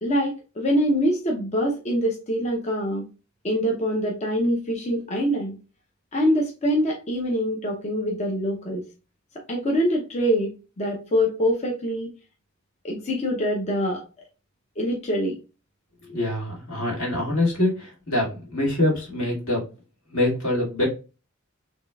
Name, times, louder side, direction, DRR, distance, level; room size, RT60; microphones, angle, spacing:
voice 1, 0.0-3.1 3.4-5.6 6.1-8.8 9.3-12.1 12.8-14.0 14.8-15.4, equal, 35° left, 0 dB, 0.6 m, -24 dB
voice 2, 16.1-19.7 20.1-20.8, left 1 dB, 75° left, -3 dB, 2.1 m, -24 dB
4.3 x 3.1 x 2.2 m, 0.31 s
head